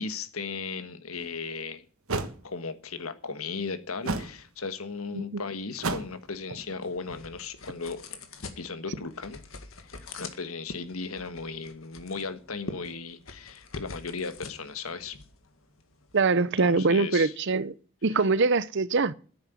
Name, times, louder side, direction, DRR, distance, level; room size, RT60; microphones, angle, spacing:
voice 1, 0.0-1.8 2.4-8.2 8.6-9.4 9.8-15.2 16.4-17.3 18.1-18.2, left 4 dB, 90° left, 1.5 m, -36 dB
sound 1, 1.2-1.3 2.1-2.4 4.0-4.4 5.8-6.2, right 3 dB, 90° right, 1.5 m, -30 dB
sound 2, 6.0-16.2, left 3 dB, 70° left, 1.9 m, -45 dB
voice 2, 16.1-17.7 18.0-19.1, right 4 dB, 55° right, 0.7 m, -23 dB
11.0 x 8.8 x 9.4 m
head